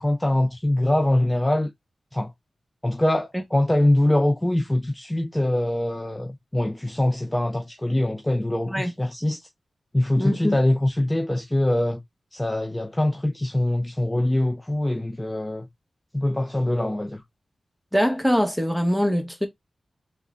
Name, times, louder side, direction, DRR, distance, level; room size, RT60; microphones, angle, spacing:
voice 1, 0.0-1.7 2.1-2.3 2.8-9.4 9.9-12.0 12.3-15.7 16.1-17.2, left 1 dB, 15° left, 0.6 m, -23 dB
voice 2, 10.2-10.6 17.9-19.5, equal, ahead, 1.2 m, -22 dB
3.6 x 2.2 x 3.7 m
cardioid pair, 60°, 0 cm